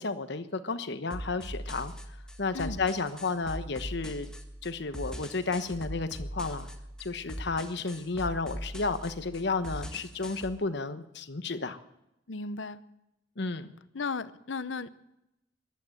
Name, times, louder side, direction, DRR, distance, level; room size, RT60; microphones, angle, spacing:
voice 1, 0.0-1.9 2.4-4.3 4.6-6.7 7.0-11.8 13.4-13.7, left 3 dB, 65° left, 1.1 m, -32 dB
sound 1, 1.1-10.5, equal, 5° left, 1.6 m, -41 dB
voice 2, 2.5-2.8 12.3-12.8 13.9-14.9, left 4 dB, 80° left, 0.8 m, -35 dB
15.0 x 11.5 x 7.9 m
head